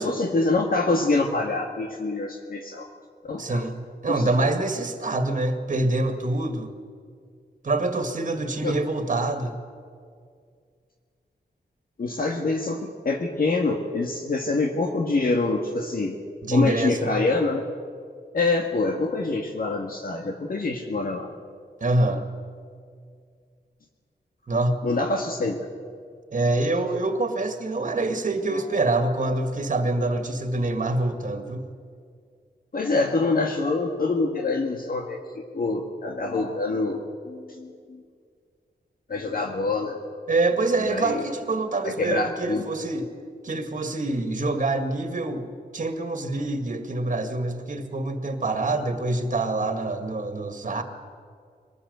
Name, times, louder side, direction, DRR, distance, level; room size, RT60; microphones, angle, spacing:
voice 1, 0.0-2.9 3.2-3.6 4.1-4.2 8.6-8.7 12.0-16.2 16.5-17.6 18.3-21.3 24.8-25.6 28.5-28.6 32.7-38.0 39.1-40.0 40.8-41.2 41.8-42.6, left 3 dB, 55° left, 2 dB, 1.8 m, -25 dB
voice 2, 3.4-6.7 7.6-9.6 16.4-17.2 21.8-22.3 24.5-24.8 26.3-31.7 40.3-43.1 43.4-45.4 45.7-50.8, right 2 dB, 45° right, 7 dB, 2.0 m, -25 dB
23.0 x 19.0 x 8.1 m, 2.1 s
wide cardioid pair, 115°, 18 cm